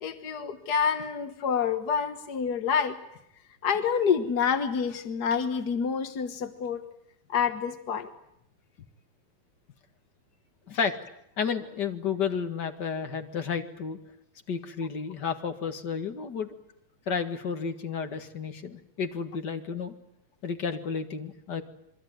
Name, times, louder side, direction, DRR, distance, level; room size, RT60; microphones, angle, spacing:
voice 1, 0.0-3.0 3.6-6.8 7.3-8.1, left 6 dB, 65° left, 9 dB, 1.0 m, -27 dB
voice 2, 11.4-14.0 14.5-16.5 17.1-19.9 20.4-21.6, left 6 dB, 40° left, 7 dB, 1.9 m, -31 dB
28.0 x 22.5 x 9.3 m, 0.77 s
omnidirectional pair, 3.9 m